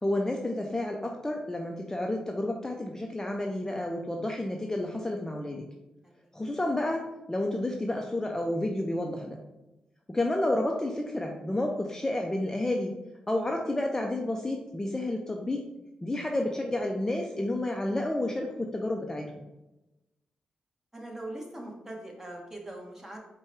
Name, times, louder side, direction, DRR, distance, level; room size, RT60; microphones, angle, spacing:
voice 1, 0.0-5.6 6.3-9.4 10.1-12.9 13.3-15.6 16.0-19.4, left 1 dB, 20° left, 1 dB, 0.6 m, -30 dB
voice 2, 20.9-23.2, right 1 dB, 15° right, 0 dB, 1.3 m, -41 dB
4.5 x 2.3 x 4.4 m, 0.96 s
supercardioid pair, 50°, 3 cm